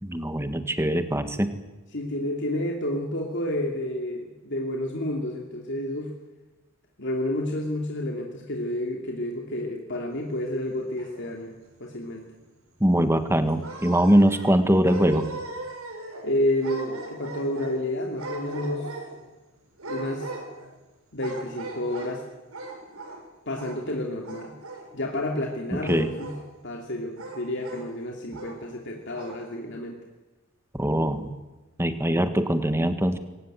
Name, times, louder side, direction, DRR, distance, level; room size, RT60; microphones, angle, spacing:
voice 1, 0.0-1.5 12.8-15.3 25.9-26.1 30.7-31.3 31.8-33.2, right 1 dB, 10° right, 9 dB, 1.7 m, -22 dB
voice 2, 1.9-6.1 7.0-11.5 11.8-12.3 16.2-18.9 19.9-20.3 21.1-22.2 23.5-24.5 24.9-26.3 26.6-30.0, left 1 dB, 55° left, 1 dB, 2.8 m, -30 dB
sound 1, 10.6-11.5 12.0-12.1 12.4-12.5 13.4-14.6 14.8-16.3 16.6-17.8 18.2-19.3 19.8-20.7 21.2-22.1 22.5-23.2 23.5-24.0 24.2-24.9 25.8-26.4 27.2-27.9 28.3-28.6 29.1-29.4, right 2 dB, 90° right, 8.0 m, -38 dB
22.0 x 18.5 x 9.2 m, 1.1 s
head